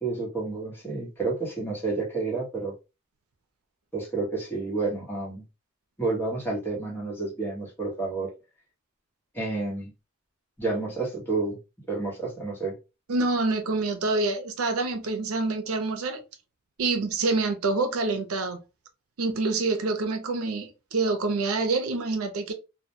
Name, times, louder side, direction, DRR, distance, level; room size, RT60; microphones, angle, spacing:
voice 1, 0.0-2.7 3.9-5.4 6.0-8.3 9.3-9.9 10.6-11.6 11.9-12.7, right 3 dB, 10° left, 0.9 m, -30 dB
voice 2, 13.1-16.2 16.8-18.6 19.2-22.5, right 3 dB, 90° right, 0.5 m, -26 dB
2.1 x 2.1 x 2.7 m
head